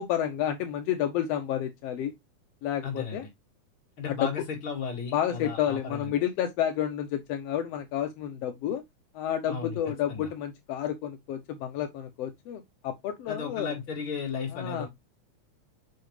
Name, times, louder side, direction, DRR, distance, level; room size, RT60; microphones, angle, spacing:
voice 1, 0.0-2.1 2.6-3.2 4.1-4.3 5.1-8.8 9.1-13.7 14.5-14.9, left 10 dB, 70° left, 1.6 m, -30 dB
voice 2, 2.8-3.3 4.0-6.1 9.5-9.8 10.1-10.3 13.3-14.9, left 6 dB, 45° left, 2.9 m, -34 dB
6.4 x 5.9 x 3.2 m
omnidirectional pair, 3.5 m